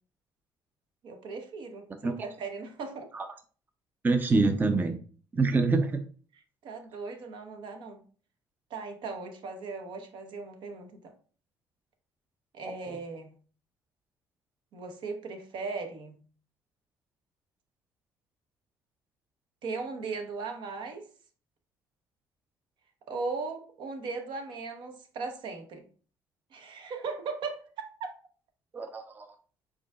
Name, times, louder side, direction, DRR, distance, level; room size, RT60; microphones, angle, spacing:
voice 1, 1.0-3.1 6.6-8.0 8.7-11.1 12.5-13.3 14.7-16.2 19.6-21.1 23.1-25.8 26.5-28.1, right 4 dB, 70° right, 5 dB, 1.0 m, -38 dB
voice 2, 4.0-5.0 5.3-6.0 12.6-13.0 28.7-29.3, right 3 dB, 20° right, 7 dB, 0.5 m, -26 dB
4.9 x 3.9 x 2.3 m, 0.41 s
cardioid pair, 95°, 8 cm